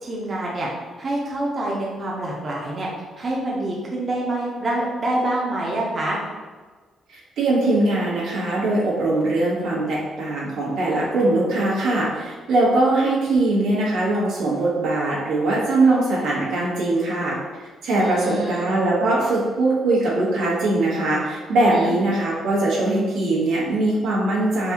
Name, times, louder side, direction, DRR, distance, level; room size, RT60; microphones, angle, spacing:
voice 1, 0.0-0.7 1.0-2.9 3.2-6.2 18.0-18.7 21.6-21.9, right 1 dB, 40° right, -4 dB, 0.7 m, -26 dB
voice 2, 7.1-17.4 17.8-24.7, right 2 dB, 90° right, -6 dB, 1.1 m, -21 dB
4.0 x 2.3 x 2.9 m, 1.4 s
cardioid pair, 90°, 0 cm